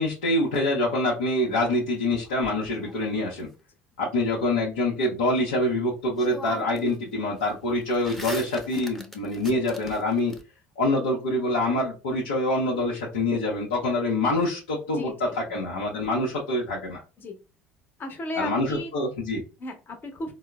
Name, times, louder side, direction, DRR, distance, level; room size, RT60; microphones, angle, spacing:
voice 1, 0.0-3.5 4.0-10.3 10.8-17.0 18.3-19.4, left 1 dB, 85° left, -3 dB, 0.7 m, -25 dB
sound 1, 2.1-3.4 5.6-5.7 6.1-7.0 7.3-10.4, equal, 5° left, 0.7 m, -42 dB
voice 2, 18.0-18.9 19.6-20.3, left 1 dB, 40° left, 5 dB, 0.9 m, -35 dB
3.7 x 2.0 x 2.2 m, 0.32 s
hypercardioid pair, 70°, 5 cm